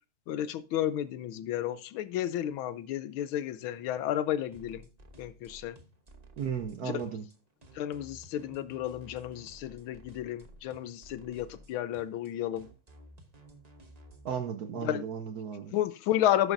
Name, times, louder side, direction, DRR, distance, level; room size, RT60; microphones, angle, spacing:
voice 1, 0.3-4.8 5.2-5.8 6.8-7.0 7.7-12.7 14.8-15.0 15.7-16.5, left 12 dB, 75° left, 1.4 m, -32 dB
sound 1, 4.5-14.4, right 1 dB, 30° right, 0.7 m, -54 dB
voice 2, 6.4-7.3 14.2-15.7, right 7 dB, 65° right, 0.9 m, -35 dB
12.0 x 9.3 x 2.6 m
omnidirectional pair, 2.3 m